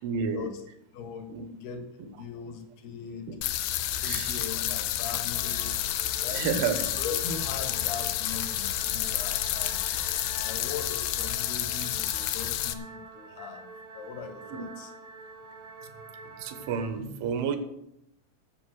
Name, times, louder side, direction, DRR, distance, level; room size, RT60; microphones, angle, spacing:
voice 1, 0.0-0.5 1.3-1.5 4.0-4.4 6.3-6.8 14.5-14.6 16.4-17.6, right 6 dB, 75° right, 8 dB, 3.5 m, -30 dB
voice 2, 0.9-3.4 3.9-5.8 6.2-10.0 10.4-14.9, left 6 dB, 65° left, 6 dB, 3.0 m, -40 dB
sound 1, 3.4-12.7, left 13 dB, 80° left, 2.8 m, -30 dB
sound 2, 5.3-16.9, right 4 dB, 60° right, 1.7 m, -47 dB
11.0 x 7.2 x 7.7 m, 0.80 s
omnidirectional pair, 5.6 m